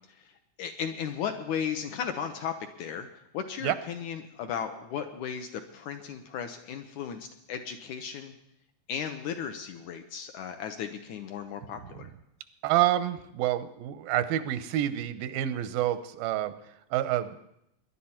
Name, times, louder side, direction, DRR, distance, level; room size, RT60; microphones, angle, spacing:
voice 1, 0.1-8.3 8.9-12.1, left 7 dB, 75° left, 6 dB, 1.9 m, -36 dB
voice 2, 12.6-16.5 16.9-17.4, right 13 dB, 90° right, 12 dB, 2.6 m, -28 dB
20.5 x 11.0 x 4.4 m, 0.79 s
omnidirectional pair, 4.0 m